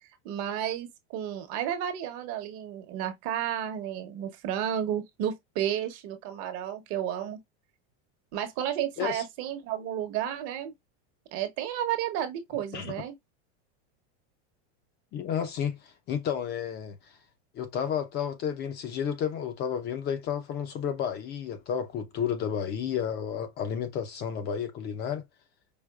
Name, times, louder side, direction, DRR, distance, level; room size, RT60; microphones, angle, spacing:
voice 1, 0.2-7.4 8.3-10.7 11.3-13.1, right 10 dB, 45° right, 1.0 m, -32 dB
voice 2, 15.1-17.0 17.5-25.2, left 8 dB, 30° left, 0.6 m, -31 dB
5.0 x 2.4 x 2.3 m
supercardioid pair, 150°, 33 cm